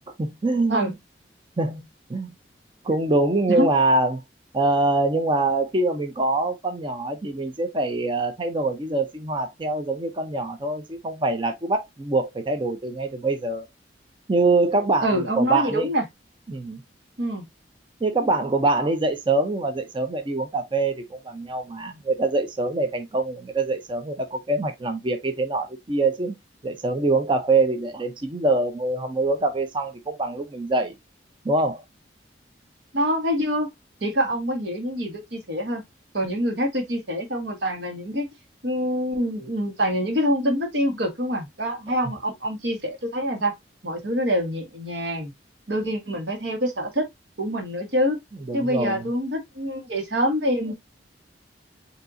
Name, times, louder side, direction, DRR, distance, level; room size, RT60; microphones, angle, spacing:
voice 1, 0.2-0.9 1.6-2.3 2.8-4.2 4.5-13.7 14.3-15.9 16.5-16.8 18.0-26.3 26.6-31.0 31.4-31.8 48.5-49.0, right 2 dB, 30° right, 0.6 m, -24 dB
voice 2, 15.0-16.0 17.2-17.5 32.9-33.7 34.0-35.8 36.1-38.3 38.6-43.5 43.8-45.3 45.7-47.1 47.4-48.2 48.5-50.7, equal, 70° right, 1.6 m, -25 dB
6.6 x 2.8 x 2.5 m
head